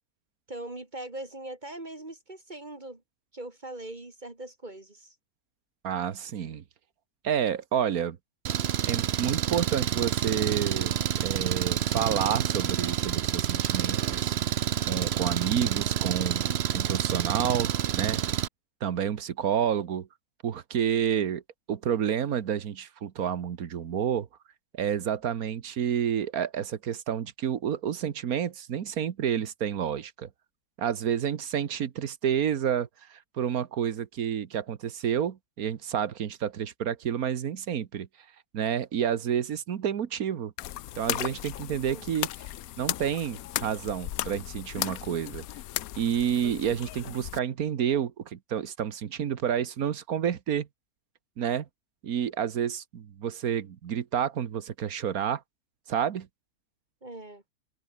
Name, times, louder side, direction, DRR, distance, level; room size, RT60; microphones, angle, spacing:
voice 1, 0.5-3.0 3.3-5.1 41.9-42.1 57.0-57.4, right 1 dB, 30° right, 2.5 m, -41 dB
voice 2, 5.8-6.6 7.2-8.2 8.8-10.9 11.2-14.3 14.9-18.2 18.8-20.1 20.4-21.4 21.7-24.3 24.7-30.3 30.8-38.1 38.5-40.5 41.0-42.3 42.8-45.4 46.0-50.7 51.4-51.7 52.0-55.4 55.9-56.3, right 8 dB, 75° right, 1.6 m, -29 dB
Engine, 8.5-18.5, right 9 dB, 55° right, 0.9 m, -28 dB
sound 1, 40.6-47.4, left 14 dB, 75° left, 1.1 m, -36 dB
omnidirectional pair, 1.6 m